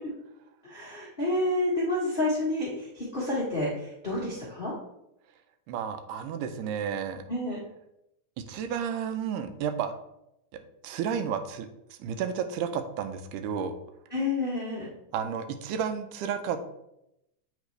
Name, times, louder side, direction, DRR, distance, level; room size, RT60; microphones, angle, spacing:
voice 1, 0.6-4.7 7.3-7.6 14.1-14.9, left 2 dB, 85° left, -7 dB, 0.4 m, -29 dB
voice 2, 5.7-7.2 8.4-9.9 10.8-13.7 15.1-16.6, right 7 dB, 85° right, 9 dB, 2.2 m, -32 dB
8.3 x 4.0 x 3.2 m, 0.84 s
omnidirectional pair, 3.6 m